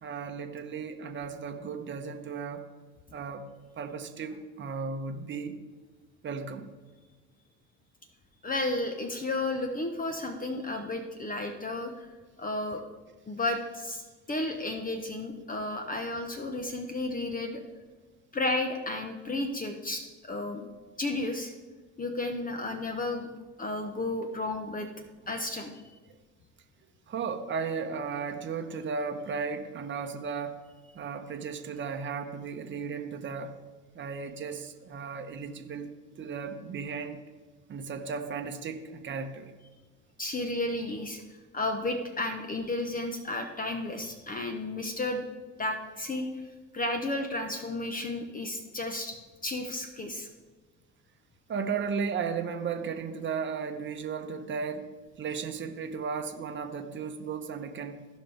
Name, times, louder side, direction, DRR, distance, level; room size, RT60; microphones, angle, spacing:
voice 1, 0.0-2.6 3.1-3.4 3.8-5.6 6.2-6.7 27.1-30.6 30.9-33.6 33.9-35.9 36.2-37.2 37.7-39.5 51.5-54.9 55.2-58.1, right 5 dB, 30° right, 6 dB, 1.1 m, -35 dB
voice 2, 8.4-12.1 12.4-12.8 13.3-14.0 14.3-17.6 18.3-20.6 21.0-21.5 22.0-23.3 23.6-24.9 25.3-25.7 40.2-41.2 41.5-45.2 45.6-46.4 46.7-49.2 49.4-50.3, left 2 dB, 20° left, 5 dB, 1.1 m, -32 dB
15.5 x 5.5 x 3.5 m, 1.3 s
hypercardioid pair, 80°, 40 cm